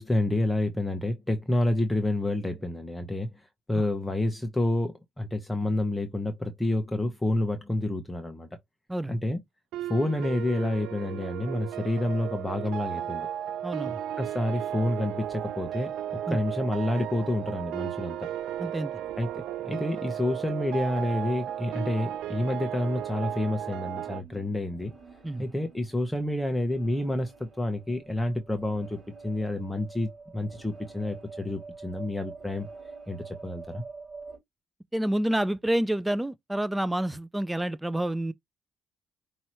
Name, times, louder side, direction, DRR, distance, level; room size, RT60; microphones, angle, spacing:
voice 1, 0.0-3.3 3.7-8.5 9.1-9.4 9.9-13.3 14.2-15.9 16.3-18.3 19.2-19.3 19.6-24.9 25.4-32.7 33.1-33.8, left 1 dB, 10° left, 1.0 m, -29 dB
sound 1, 9.7-24.2, right 11 dB, 90° right, 0.5 m, -35 dB
voice 2, 13.6-14.0 16.3-16.4 18.6-18.9 25.2-25.4 34.9-38.3, right 1 dB, 10° right, 0.3 m, -28 dB
sound 2, 15.2-34.4, right 4 dB, 25° right, 4.2 m, -49 dB
5.4 x 3.0 x 3.0 m
cardioid pair, 90°, 0 cm